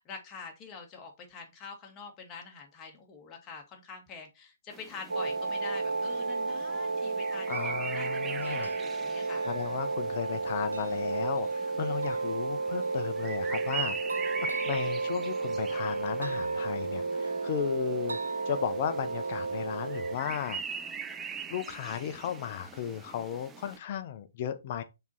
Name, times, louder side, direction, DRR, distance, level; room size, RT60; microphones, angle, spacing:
voice 1, 0.0-9.4, left 5 dB, 20° left, 2.1 m, -45 dB
sound 1, 4.7-23.8, right 6 dB, 15° right, 0.6 m, -43 dB
sound 2, 5.1-20.2, right 3 dB, 80° right, 0.4 m, -32 dB
voice 2, 7.5-8.7 9.4-14.3 14.6-18.2 18.5-20.9 21.5-24.8, left 9 dB, 40° left, 1.0 m, -35 dB
5.9 x 4.5 x 4.2 m
figure-of-eight pair, 125°, 0 cm